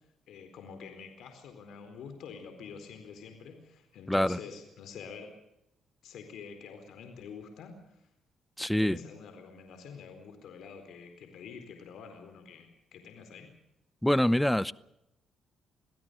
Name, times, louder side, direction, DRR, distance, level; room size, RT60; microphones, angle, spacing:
voice 1, 0.3-5.3 6.0-8.1 8.8-13.5, left 6 dB, 75° left, 4.3 m, -47 dB
voice 2, 4.1-4.4 8.6-9.0 14.0-14.7, left 1 dB, 5° left, 0.7 m, -25 dB
26.0 x 17.0 x 6.8 m
cardioid pair, 90°, 0 cm